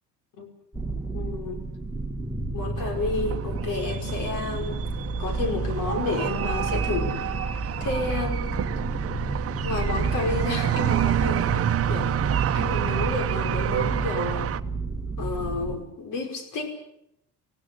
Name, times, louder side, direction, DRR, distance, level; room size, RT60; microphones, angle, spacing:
sound 1, 0.7-15.8, right 2 dB, ahead, 1.5 m, -31 dB
voice 1, 1.1-1.6 2.5-4.8 5.2-7.2 7.8-8.6 9.6-12.1 12.5-14.5 15.2-16.8, left 3 dB, 70° left, 5 dB, 5.5 m, -31 dB
sound 2, 2.8-14.6, right 11 dB, 45° right, 0.9 m, -28 dB
26.0 x 16.5 x 8.5 m, 0.78 s
cardioid pair, 125°, 34 cm